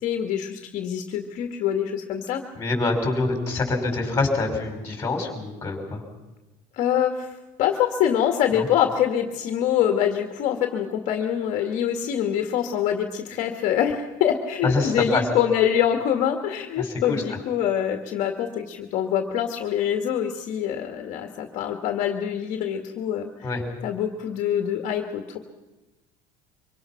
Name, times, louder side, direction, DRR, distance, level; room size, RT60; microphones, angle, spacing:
voice 1, 0.0-2.4 6.7-7.3 7.6-23.5 23.8-25.4, left 9 dB, 45° left, 5 dB, 1.9 m, -25 dB
voice 2, 2.5-6.0 8.5-8.6 14.6-15.2 16.8-17.2 23.4-23.6, left 3 dB, 15° left, 3 dB, 4.9 m, -25 dB
25.0 x 24.5 x 5.9 m, 1.1 s
cardioid pair, 175°, 17 cm